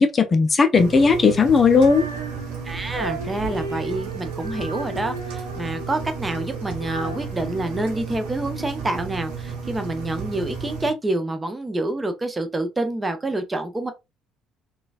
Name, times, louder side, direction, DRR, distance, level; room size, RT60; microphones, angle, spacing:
voice 1, 0.0-2.0, left 4 dB, 30° left, 0.4 m, -16 dB
Engine, 0.8-10.9, right 6 dB, 65° right, 0.9 m, -33 dB
Female singing, 1.6-8.7, right 2 dB, 85° right, 0.6 m, -36 dB
voice 2, 2.6-13.9, right 2 dB, 20° right, 0.6 m, -27 dB
3.9 x 2.3 x 2.4 m
figure-of-eight pair, 50°, 0 cm